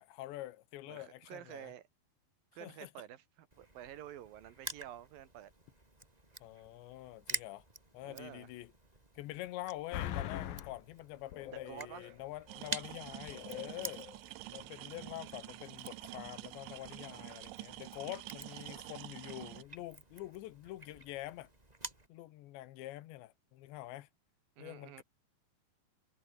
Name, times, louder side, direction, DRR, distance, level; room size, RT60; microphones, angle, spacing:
voice 1, 0.0-1.7 2.6-2.9 6.4-7.6 7.9-8.7 9.2-14.1 14.5-21.5 22.1-24.1 24.6-25.0, left 15 dB, 80° left, 3.4 m, -46 dB
voice 2, 0.9-1.9 2.5-5.5 8.0-8.5 11.7-12.2 14.4-14.9 24.6-25.0, right 11 dB, 60° right, 3.0 m, -50 dB
Crushing, 3.5-22.1, right 2 dB, 10° right, 2.5 m, -49 dB
sound 1, 9.9-10.8 11.3-12.2 12.5-12.6 13.3-14.2 14.5-14.6, left 11 dB, 60° left, 3.0 m, -42 dB
sound 2, 12.5-19.6, right 18 dB, 80° right, 3.2 m, -48 dB
omnidirectional pair, 5.2 m